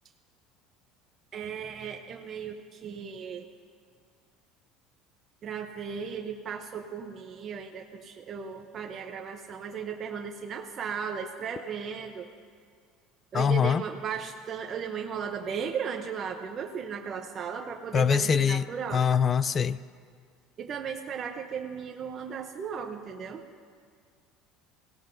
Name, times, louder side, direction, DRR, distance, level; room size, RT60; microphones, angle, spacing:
voice 1, 1.3-3.5 5.4-12.3 13.3-19.0 20.6-23.4, right 6 dB, 35° right, 3 dB, 0.7 m, -36 dB
voice 2, 13.3-13.8 17.9-18.7 18.9-19.8, left 7 dB, 30° left, 17 dB, 0.4 m, -23 dB
25.0 x 17.0 x 2.6 m, 2.1 s
cardioid pair, 140°, 0 cm